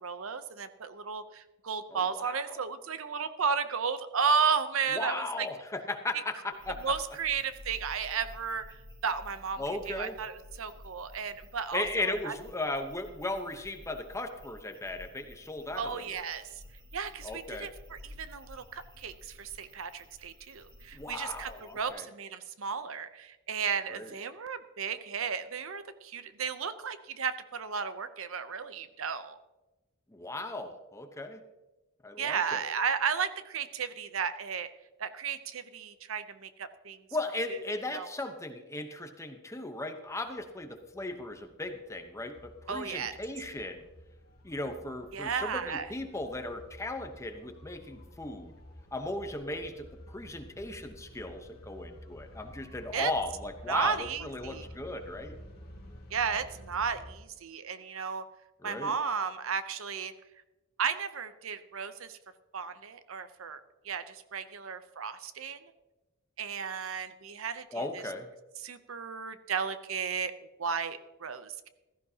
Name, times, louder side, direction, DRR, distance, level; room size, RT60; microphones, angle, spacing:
voice 1, 0.0-5.5 6.8-12.3 15.8-16.6 16.9-29.4 32.2-34.7 35.0-37.0 37.5-37.6 37.9-38.1 42.7-43.2 45.1-45.9 52.9-53.1 53.7-54.7 56.1-58.2 58.6-60.1 60.8-62.2 62.5-65.6 66.4-68.0 68.6-70.3 70.6-71.7, right 6 dB, 70° right, 12 dB, 0.7 m, -34 dB
voice 2, 1.9-2.6 4.9-6.8 9.6-10.2 11.7-16.1 17.2-17.7 20.9-22.1 23.9-24.1 30.1-31.4 32.0-32.6 37.1-43.8 44.4-48.6 48.9-55.3 58.6-58.9 67.7-68.3, left 2 dB, 15° left, 6 dB, 0.9 m, -37 dB
sound 1, 6.5-21.9, left 1 dB, 25° right, 5.4 m, -51 dB
sound 2, 40.1-57.1, equal, 50° left, 2.4 m, -51 dB
15.5 x 14.0 x 2.8 m, 1.0 s
head